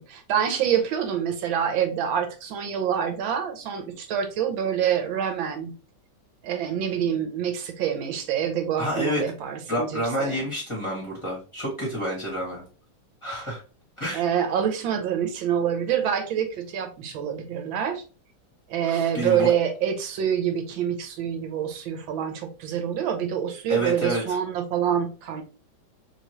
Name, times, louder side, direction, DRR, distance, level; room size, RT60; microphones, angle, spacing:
voice 1, 0.0-5.7 6.4-9.9 10.2-10.4 14.1-18.0 18.7-25.4, right 9 dB, 80° right, 5 dB, 1.4 m, -26 dB
voice 2, 8.8-9.2 9.7-12.6 13.2-13.6 14.0-14.2 18.8-19.5 23.7-24.4, equal, 15° left, -5 dB, 1.3 m, -29 dB
3.2 x 2.9 x 2.8 m, 0.35 s
omnidirectional pair, 2.1 m